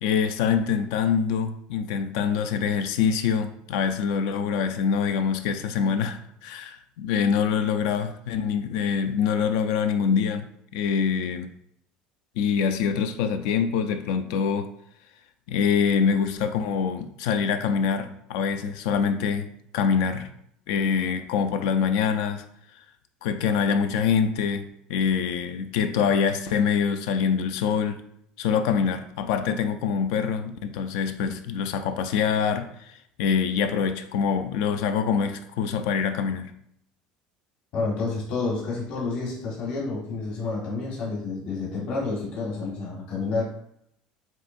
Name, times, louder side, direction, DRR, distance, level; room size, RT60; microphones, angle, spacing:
voice 1, 0.0-10.4 10.7-11.5 12.4-14.7 15.5-20.3 20.7-22.4 23.2-28.0 28.4-36.5, left 6 dB, 80° left, 9 dB, 0.4 m, -25 dB
voice 2, 37.7-43.5, left 3 dB, 50° left, -4 dB, 1.4 m, -29 dB
7.5 x 2.7 x 2.6 m, 0.73 s
cardioid pair, 165°, 3 cm